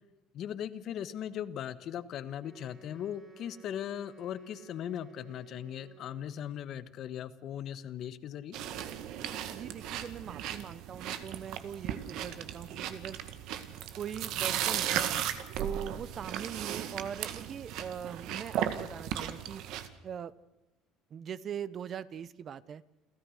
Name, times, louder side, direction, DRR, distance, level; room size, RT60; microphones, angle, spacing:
voice 1, 0.3-8.6, left 10 dB, 50° left, 14 dB, 1.3 m, -39 dB
Wind instrument woodwind instrument, 2.4-6.5, right 6 dB, 20° right, 5.0 m, -55 dB
sound 1, 8.5-19.9, right 10 dB, 65° right, 1.9 m, -36 dB
voice 2, 9.5-13.2 14.0-15.2 15.6-19.6 20.0-20.3 21.1-22.8, right 8 dB, 40° right, 18 dB, 0.8 m, -41 dB
29.5 x 13.5 x 6.5 m, 1.0 s
cardioid pair, 125°, 0 cm